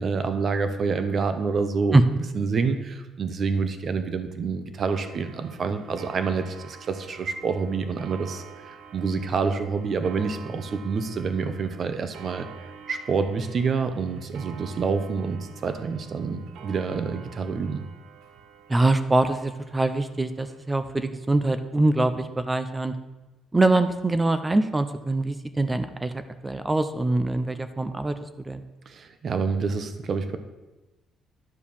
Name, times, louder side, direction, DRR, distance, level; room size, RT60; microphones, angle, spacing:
voice 1, 0.0-2.0 2.3-12.5 12.9-17.8 28.9-30.4, right 5 dB, 40° right, 9 dB, 0.9 m, -27 dB
Clock, 4.8-20.9, right 7 dB, 80° right, 0.8 m, -48 dB
voice 2, 18.7-23.0 23.5-28.6, right 2 dB, 15° right, 10 dB, 0.5 m, -23 dB
10.5 x 4.6 x 7.1 m, 1.1 s
cardioid pair, 140°, 0 cm